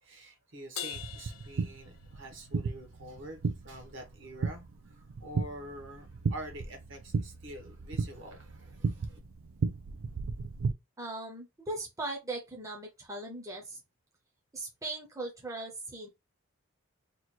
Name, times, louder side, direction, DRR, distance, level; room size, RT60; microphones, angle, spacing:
voice 1, 0.0-9.2, right 1 dB, 60° right, 1.0 m, -46 dB
Crash cymbal, 0.8-2.5, left 11 dB, 75° left, 0.6 m, -42 dB
sound 1, 0.9-10.7, right 4 dB, 80° right, 0.5 m, -35 dB
voice 2, 11.0-13.8 14.5-16.1, right 2 dB, 15° right, 0.7 m, -39 dB
3.0 x 2.4 x 4.3 m
head